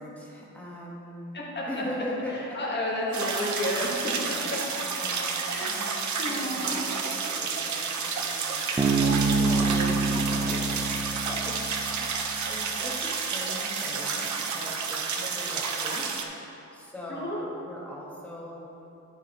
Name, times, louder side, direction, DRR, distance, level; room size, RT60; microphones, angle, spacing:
voice 1, 0.0-1.4 1.7-2.6 4.1-5.9 6.2-9.3 9.9-10.7 11.3-11.6 12.0-16.1 16.7-18.7, left 1 dB, 5° left, -5 dB, 1.3 m, -40 dB
voice 2, 2.5-4.1 5.5-6.9 8.7-10.7 17.1-17.4, left 1 dB, 35° left, -5 dB, 1.6 m, -32 dB
sound 1, 3.1-16.2, right 5 dB, 65° right, 0.7 m, -30 dB
Bass guitar, 8.8-12.3, right 3 dB, 15° right, 0.4 m, -26 dB
11.0 x 3.7 x 4.4 m, 2.8 s
wide cardioid pair, 135°, 31 cm